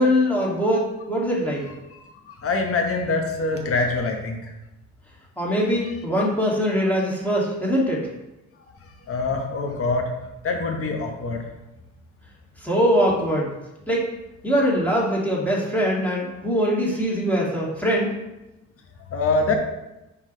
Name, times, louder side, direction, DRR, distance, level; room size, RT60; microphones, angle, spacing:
voice 1, 0.0-1.6 5.4-8.1 12.6-13.5 13.9-14.0 14.4-18.1, equal, 5° left, -5 dB, 2.1 m, -22 dB
voice 2, 1.9-4.5 9.1-10.1 10.4-11.4 19.1-19.5, left 3 dB, 50° left, 2 dB, 1.3 m, -24 dB
5.6 x 4.7 x 4.0 m, 0.96 s
cardioid pair, 90°, 30 cm